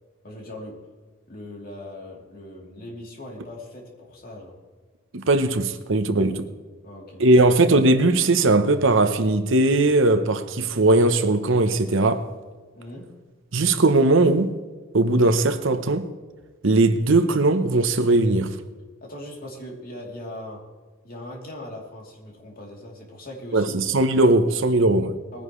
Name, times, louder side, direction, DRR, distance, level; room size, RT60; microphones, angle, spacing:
voice 1, 0.2-0.8 1.3-4.6 6.2-6.4 6.8-7.2 12.7-13.1 19.0-20.6 21.0-23.8 25.3-25.4, left 1 dB, 45° left, 3.2 m, -39 dB
voice 2, 5.1-6.5 7.2-12.3 13.5-14.5 14.9-16.1 16.6-18.6 23.5-25.2, right 2 dB, 65° right, 0.9 m, -19 dB
20.0 x 10.5 x 3.2 m
head